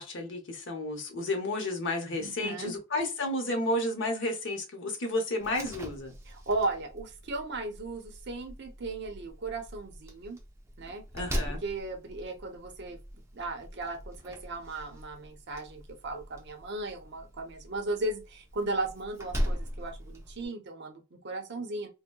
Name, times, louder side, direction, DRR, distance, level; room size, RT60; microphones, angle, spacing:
voice 1, 0.0-6.1 11.1-11.6, left 1 dB, 60° left, 0.8 m, -32 dB
voice 2, 2.2-2.7 6.3-10.4 10.8-11.0 11.6-13.0 13.3-21.9, right 2 dB, 55° right, 0.7 m, -36 dB
Slam, 5.4-20.5, equal, 15° right, 0.5 m, -40 dB
3.8 x 2.0 x 2.2 m
head